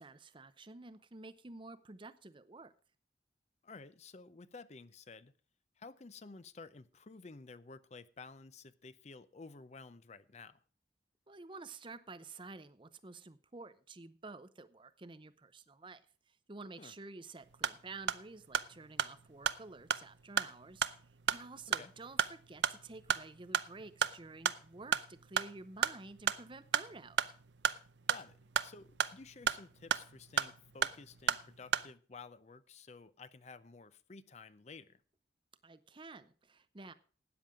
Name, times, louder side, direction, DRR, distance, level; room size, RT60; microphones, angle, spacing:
voice 1, 0.0-2.7 11.3-27.3 35.6-36.9, right 3 dB, 25° right, 13 dB, 0.7 m, -51 dB
voice 2, 3.6-5.3 5.8-10.6 16.8-16.9 21.7-21.9 28.1-35.0, left 4 dB, 40° left, 15 dB, 0.5 m, -53 dB
sound 1, 17.4-31.9, right 7 dB, 75° right, 0.6 m, -36 dB
13.0 x 9.2 x 4.9 m, 0.38 s
head